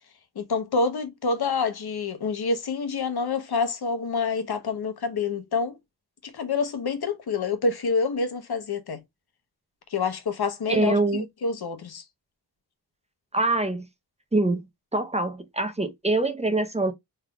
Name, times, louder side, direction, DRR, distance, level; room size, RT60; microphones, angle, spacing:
voice 1, 0.4-5.7 6.3-9.0 9.9-12.0, left 4 dB, 65° left, 1.0 m, -27 dB
voice 2, 10.7-11.3 13.3-13.9 14.3-14.6 14.9-16.9, right 2 dB, 15° right, 0.6 m, -24 dB
3.6 x 3.3 x 2.2 m
wide cardioid pair, 150°, 41 cm